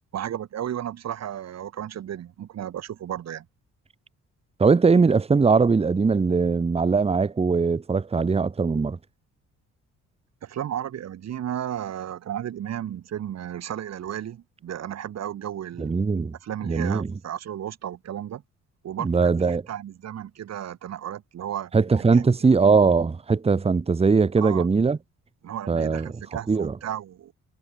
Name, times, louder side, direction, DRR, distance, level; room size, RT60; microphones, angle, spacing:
voice 1, 0.1-3.5 10.4-16.0 16.4-18.4 18.8-21.7 22.0-22.5 24.4-24.7 25.4-27.3, right 10 dB, 60° right, 1.6 m, -34 dB
voice 2, 4.6-9.0 15.8-16.3 16.7-17.1 19.0-19.6 21.7-25.0 25.7-26.1 26.5-26.7, right 4 dB, 20° right, 0.9 m, -20 dB
cardioid pair, 90°, 30 cm